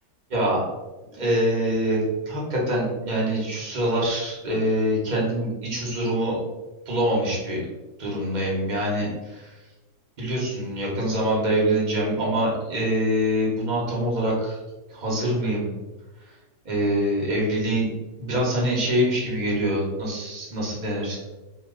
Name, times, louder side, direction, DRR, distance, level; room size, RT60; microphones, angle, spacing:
voice 1, 0.3-0.6 1.1-6.4 6.9-7.7 8.0-9.5 10.2-14.6 14.9-15.7 16.6-21.2, right 1 dB, 35° right, -4 dB, 0.7 m, -25 dB
2.9 x 2.3 x 3.7 m, 1.1 s
omnidirectional pair, 1.9 m